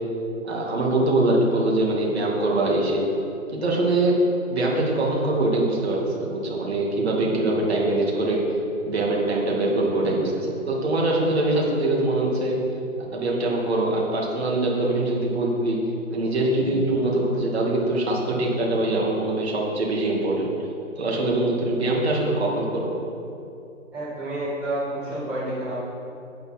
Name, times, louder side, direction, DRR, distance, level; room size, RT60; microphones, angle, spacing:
voice 1, 0.4-3.1 3.5-4.2 4.5-8.4 8.8-12.6 13.1-15.8 16.1-20.5 21.0-22.9, right 2 dB, 50° right, -2 dB, 2.3 m, -23 dB
voice 2, 23.9-25.7, right 1 dB, 5° right, -17 dB, 1.8 m, -29 dB
8.9 x 8.3 x 4.3 m, 2.6 s
hypercardioid pair, 170°, 40 cm